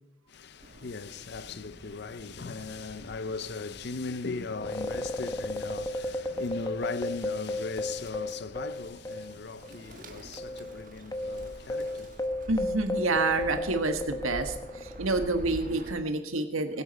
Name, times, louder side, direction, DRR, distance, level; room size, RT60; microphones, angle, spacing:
voice 1, 0.3-12.2, left 4 dB, 55° left, 0.6 m, -38 dB
Bird, 0.6-16.0, right 1 dB, 40° right, 1.4 m, -48 dB
sound 1, 4.6-9.4 9.6-9.8 10.4-15.1, left 1 dB, 20° left, 0.9 m, -34 dB
voice 2, 12.5-16.8, right 3 dB, 90° right, 1.6 m, -28 dB
20.0 x 8.4 x 5.3 m
head